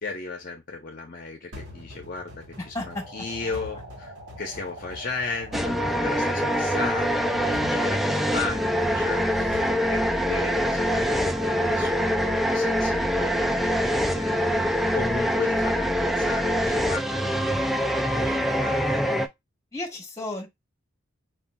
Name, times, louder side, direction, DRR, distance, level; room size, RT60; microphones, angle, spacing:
voice 1, 0.0-17.4 18.0-19.0, left 3 dB, 45° left, 0.8 m, -36 dB
sound 1, 1.5-10.7, left 2 dB, 65° right, 1.7 m, -44 dB
sound 2, 2.8-12.4, equal, 50° right, 1.6 m, -45 dB
sound 3, 5.5-19.3, equal, ahead, 0.3 m, -24 dB
voice 2, 19.7-20.5, left 2 dB, 15° left, 1.4 m, -33 dB
4.9 x 2.8 x 2.3 m
head